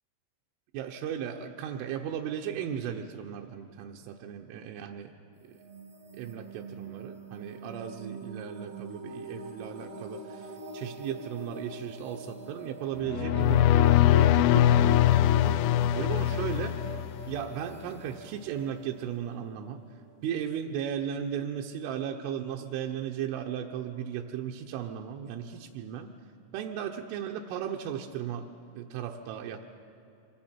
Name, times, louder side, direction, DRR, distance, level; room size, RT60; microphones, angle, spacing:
voice 1, 0.7-5.1 6.1-10.5 10.7-16.8 17.3-19.8 20.2-26.1 26.5-28.5 28.8-29.6, right 9 dB, 85° right, 1 dB, 3.3 m, -36 dB
sound 1, 5.4-20.0, right 4 dB, 70° right, 1.6 m, -44 dB
sound 2, 13.0-17.4, left 12 dB, 85° left, 2.6 m, -22 dB
26.0 x 23.5 x 4.4 m, 2.7 s
omnidirectional pair, 5.6 m